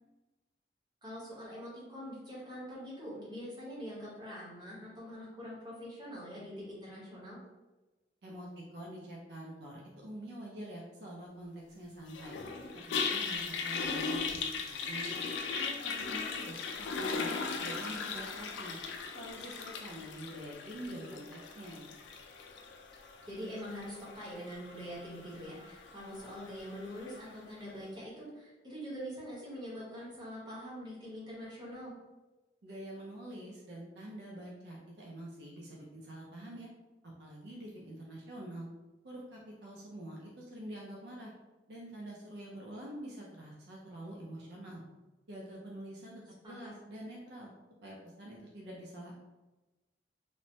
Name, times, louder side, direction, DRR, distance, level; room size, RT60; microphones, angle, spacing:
voice 1, 1.0-7.4 20.8-21.1 23.2-31.9 46.4-46.7, equal, 25° right, -7 dB, 1.0 m, -44 dB
voice 2, 8.2-12.4 12.7-14.4 14.7-15.1 15.5-18.8 19.1-21.9 32.6-36.7 37.0-38.7 39.0-41.3 41.7-44.8 45.3-47.5 47.8-49.2, right 1 dB, 70° right, -3 dB, 0.5 m, -46 dB
Toilet flush, 12.1-27.3, left 5 dB, 90° left, 0.3 m, -38 dB
3.1 x 2.0 x 2.6 m, 1.1 s
head